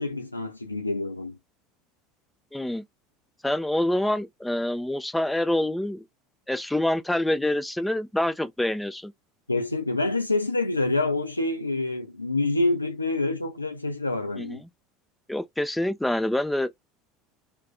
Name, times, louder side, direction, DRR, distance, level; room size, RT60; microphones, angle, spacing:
voice 1, 0.0-1.4 9.5-14.6, left 2 dB, 90° left, 0.5 m, -27 dB
voice 2, 2.5-2.8 3.4-6.0 6.5-9.1 14.4-14.6 15.3-16.7, left 1 dB, 5° left, 0.4 m, -26 dB
2.5 x 2.2 x 2.3 m
figure-of-eight pair, 70°, 0 cm